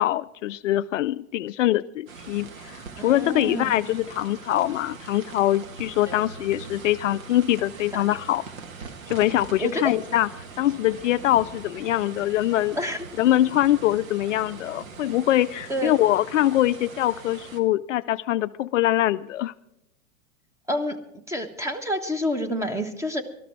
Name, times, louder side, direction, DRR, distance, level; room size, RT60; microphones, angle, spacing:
voice 1, 0.0-8.4 9.1-10.3 10.6-12.8 13.2-19.5, left 14 dB, 60° left, 15 dB, 0.5 m, -23 dB
sound 1, 2.1-17.6, right 5 dB, 70° right, 1.8 m, -42 dB
voice 2, 3.0-3.7 6.1-6.2 7.9-8.1 9.6-9.9 12.7-13.1 15.7-15.9 20.7-21.0 21.3-23.2, equal, 5° right, 9 dB, 1.3 m, -28 dB
18.5 x 13.0 x 4.6 m, 0.83 s
hypercardioid pair, 100°, 42 cm